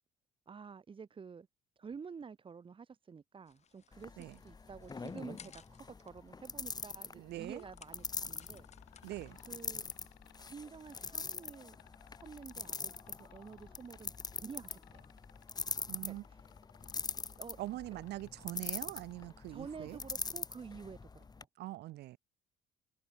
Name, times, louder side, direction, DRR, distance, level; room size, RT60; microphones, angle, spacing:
voice 1, 0.5-1.5 1.8-8.7 9.5-9.9 10.4-11.8 12.2-15.1 16.1-16.2 17.4-17.6 17.9-18.0 19.5-21.3, right 5 dB, 30° right, 3.0 m, -49 dB
sound 1, 3.4-11.4, left 7 dB, 40° left, 3.5 m, -63 dB
sound 2, 3.9-21.4, left 4 dB, 25° left, 2.9 m, -44 dB
voice 2, 7.1-7.6 9.0-9.4 15.9-16.2 17.6-20.0 21.6-22.2, right 16 dB, 80° right, 2.3 m, -43 dB
sound 3, 7.4-19.6 21.2-21.3, left 18 dB, 85° left, 3.5 m, -60 dB
cardioid pair, 110°, 17 cm